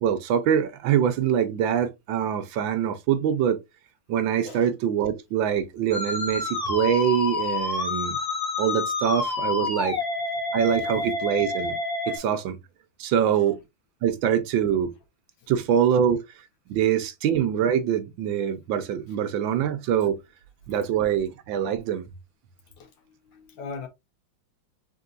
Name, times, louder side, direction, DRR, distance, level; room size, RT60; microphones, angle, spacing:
voice 1, 0.0-3.6 4.1-8.2 8.6-10.0 10.5-11.7 12.1-12.6 13.0-13.6 14.0-14.9 15.5-16.2 16.7-20.2 20.7-22.1, right 9 dB, 75° right, 1.4 m, -24 dB
Musical instrument, 5.9-12.2, left 3 dB, 25° left, 0.5 m, -28 dB
voice 2, 23.3-23.9, left 4 dB, 70° left, 1.6 m, -39 dB
4.0 x 3.8 x 2.4 m
omnidirectional pair, 2.2 m